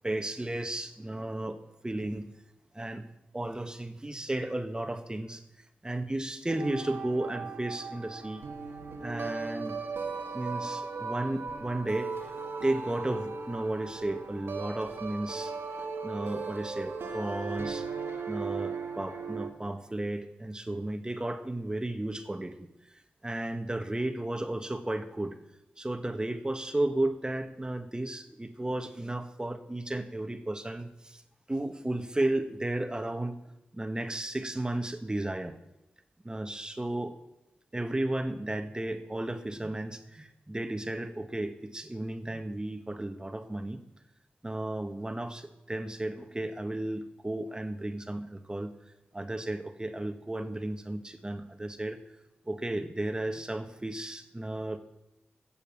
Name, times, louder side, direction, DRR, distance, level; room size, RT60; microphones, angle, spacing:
voice 1, 0.0-1.6 1.8-2.2 2.7-3.0 3.3-5.4 5.8-8.4 9.0-9.8 10.3-12.1 12.6-15.5 16.0-17.9 18.3-25.4 25.8-31.2 31.5-33.4 33.7-35.6 36.2-37.2 37.7-43.8 44.4-48.7 49.1-52.0 52.4-54.8, right 1 dB, 20° right, 9 dB, 1.5 m, -34 dB
sound 1, 6.5-19.5, right 4 dB, 80° right, 1.5 m, -37 dB
16.0 x 7.1 x 7.1 m, 0.93 s
cardioid pair, 50°, 4 cm